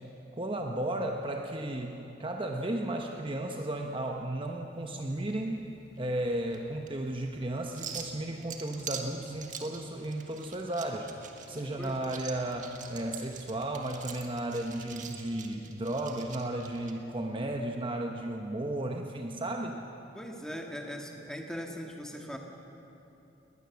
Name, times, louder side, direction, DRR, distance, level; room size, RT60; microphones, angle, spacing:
voice 1, 0.3-5.6 6.0-11.1 11.5-19.8, right 1 dB, 25° right, 3 dB, 1.0 m, -34 dB
sound 1, 4.7-16.9, right 7 dB, 45° right, 1.6 m, -45 dB
Bowed string instrument, 8.5-14.2, equal, 80° left, 5.1 m, -55 dB
voice 2, 20.1-22.4, equal, 5° left, 2 dB, 1.7 m, -40 dB
20.0 x 19.5 x 7.1 m, 3.0 s
head